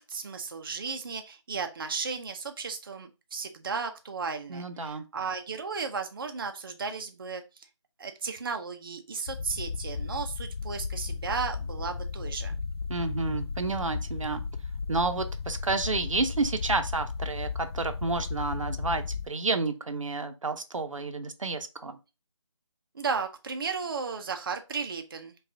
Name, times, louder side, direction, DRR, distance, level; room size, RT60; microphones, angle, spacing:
voice 1, 0.0-7.4 8.0-12.5 22.9-25.5, right 5 dB, 45° right, 5 dB, 0.4 m, -34 dB
voice 2, 4.5-5.0 12.9-14.4 14.9-22.0, right 3 dB, 90° right, 8 dB, 0.6 m, -30 dB
sound 1, 9.3-19.3, left 5 dB, 50° left, 0.4 m, -35 dB
5.0 x 2.3 x 2.7 m, 0.27 s
figure-of-eight pair, 165°, 16 cm